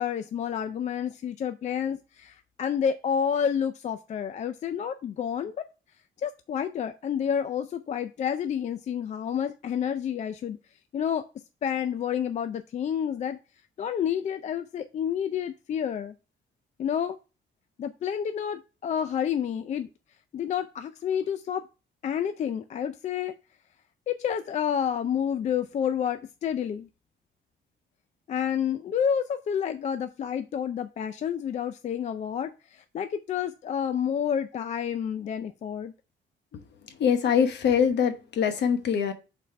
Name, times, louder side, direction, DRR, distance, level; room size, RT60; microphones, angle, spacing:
voice 1, 0.0-5.6 6.2-10.6 10.9-11.3 11.6-13.4 13.8-16.1 16.8-17.2 17.8-19.9 20.3-21.7 22.0-23.3 24.1-26.9 28.3-35.9, left 8 dB, 35° left, 0.3 m, -29 dB
voice 2, 37.0-39.1, left 7 dB, 60° left, 1.0 m, -23 dB
5.2 x 4.2 x 5.5 m
cardioid pair, 180°, 20 cm